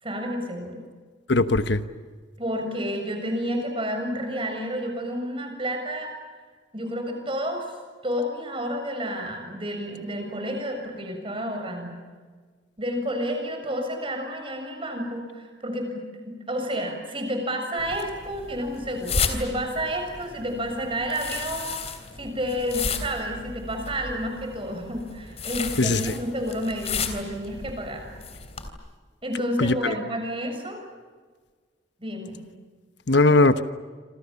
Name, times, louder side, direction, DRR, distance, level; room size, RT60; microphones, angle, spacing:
voice 1, 0.0-0.8 2.4-6.1 6.7-7.7 8.0-11.9 12.8-28.0 29.2-30.8 32.0-32.4, equal, 30° right, 4 dB, 7.0 m, -30 dB
voice 2, 1.3-1.8 25.8-26.1 29.6-30.0 33.1-33.6, left 2 dB, 65° left, 11 dB, 1.2 m, -19 dB
sound 1, 17.8-28.7, left 5 dB, 35° left, 3.3 m, -34 dB
27.5 x 27.0 x 7.1 m, 1.5 s
head